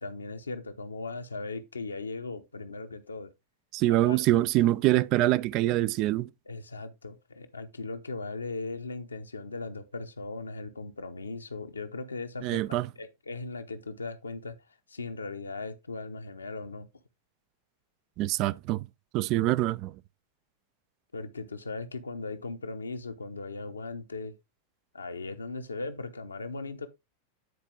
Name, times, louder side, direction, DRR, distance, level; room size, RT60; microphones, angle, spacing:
voice 1, 0.0-3.3 3.9-4.2 6.5-14.6 14.9-16.9 21.1-24.3 24.9-26.9, left 3 dB, 75° left, 0.9 m, -38 dB
voice 2, 3.7-6.3 12.4-12.9 18.2-18.9 19.1-20.0, right 16 dB, 40° right, 0.3 m, -25 dB
9.5 x 4.4 x 3.7 m
figure-of-eight pair, 90°, 0 cm